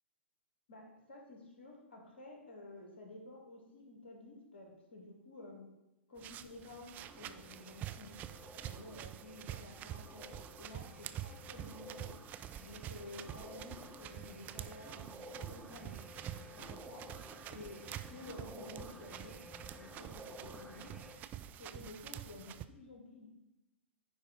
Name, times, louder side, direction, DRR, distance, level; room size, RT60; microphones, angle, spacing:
voice 1, 0.7-5.7 6.1-8.1 8.6-12.1 12.6-16.0 16.4-17.0 17.5-17.8 18.1-19.4 19.7-21.0 21.6-23.3, left 2 dB, 65° left, 0 dB, 2.2 m, -52 dB
sound 1, 6.2-22.7, right 11 dB, 25° right, 0.3 m, -47 dB
sound 2, 7.0-21.2, equal, 5° right, 0.7 m, -54 dB
9.6 x 4.8 x 4.1 m, 0.94 s
figure-of-eight pair, 105°, 7 cm